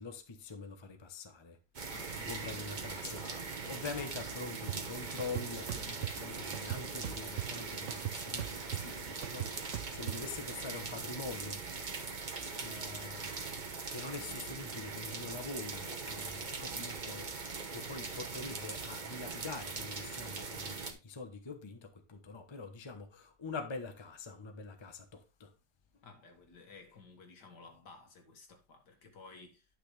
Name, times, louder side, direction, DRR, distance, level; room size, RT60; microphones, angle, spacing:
voice 1, 0.0-1.6 2.2-11.6 12.5-13.6 13.9-25.5, left 4 dB, 25° left, 0.6 m, -45 dB
sound 1, 1.7-20.9, right 4 dB, 35° right, 0.9 m, -41 dB
voice 2, 1.9-3.3 26.0-29.7, left 4 dB, 65° left, 2.3 m, -56 dB
sound 2, 4.7-4.8 5.2-6.1 6.5-7.6 7.9-10.2, right 12 dB, 70° right, 0.7 m, -39 dB
10.0 x 6.1 x 3.3 m
omnidirectional pair, 2.0 m